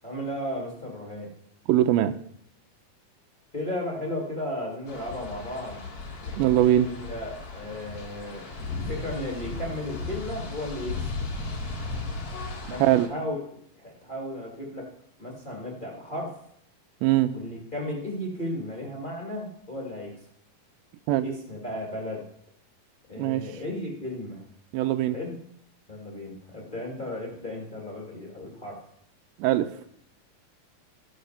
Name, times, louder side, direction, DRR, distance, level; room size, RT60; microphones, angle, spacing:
voice 1, 0.0-1.3 3.5-5.8 6.5-11.0 12.7-13.4 13.7-14.9 15.2-16.3 17.3-20.1 21.2-22.3 23.1-24.4 25.1-25.4 25.9-28.8, left 1 dB, 30° left, -3 dB, 0.9 m, -35 dB
voice 2, 1.7-2.1 6.4-6.9 12.8-13.1 17.0-17.3 21.1-21.3 23.2-23.4 24.7-25.2 29.4-29.7, right 13 dB, 80° right, 11 dB, 2.3 m, -21 dB
sound 1, 4.9-13.1, left 3 dB, 80° left, 0.8 m, -36 dB
13.5 x 6.5 x 5.6 m, 0.69 s
omnidirectional pair, 4.5 m